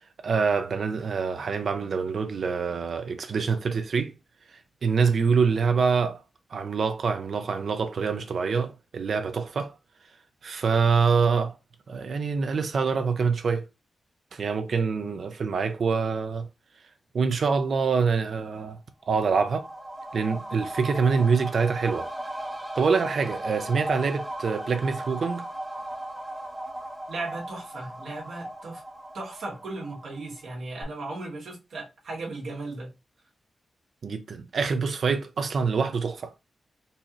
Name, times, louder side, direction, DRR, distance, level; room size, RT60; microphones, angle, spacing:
voice 1, 0.2-4.1 4.8-6.2 6.5-9.7 10.4-11.6 11.9-13.6 14.3-16.5 17.1-18.8 19.1-19.7 20.1-22.1 22.8-25.4 34.0-36.3, right 5 dB, 65° right, 0.4 m, -25 dB
sound 1, 19.0-30.5 30.8-30.9, right 1 dB, 10° right, 0.7 m, -37 dB
voice 2, 27.1-28.8 29.1-32.9, right 2 dB, 90° right, 1.3 m, -36 dB
4.1 x 2.4 x 2.9 m
wide cardioid pair, 120°, 0 cm